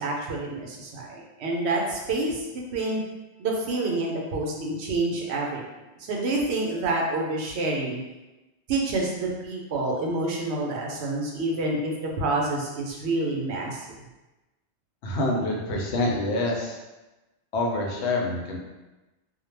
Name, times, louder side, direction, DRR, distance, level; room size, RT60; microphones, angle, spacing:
voice 1, 0.0-3.0 3.4-5.6 6.0-8.0 8.7-13.8, right 2 dB, 70° right, -1 dB, 0.8 m, -28 dB
voice 2, 15.0-16.8 17.5-18.6, left 2 dB, 75° left, -1 dB, 0.8 m, -26 dB
2.2 x 2.1 x 3.1 m, 1.1 s
omnidirectional pair, 1.2 m